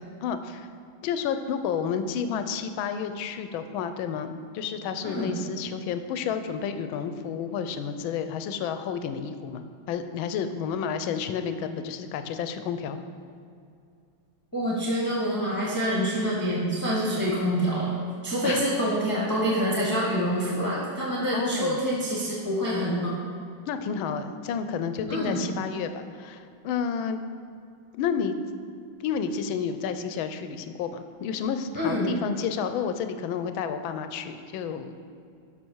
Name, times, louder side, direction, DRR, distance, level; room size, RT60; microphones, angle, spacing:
voice 1, 0.2-0.7 1.0-13.0 17.1-17.2 18.4-18.7 21.3-21.8 23.7-27.2 28.0-28.4 29.0-35.1, left 7 dB, 75° left, 9 dB, 1.4 m, -31 dB
voice 2, 14.5-18.0 18.2-23.1 25.1-25.4 31.7-32.1, equal, 10° left, -6 dB, 1.1 m, -26 dB
12.0 x 6.1 x 4.6 m, 2.5 s
omnidirectional pair, 2.3 m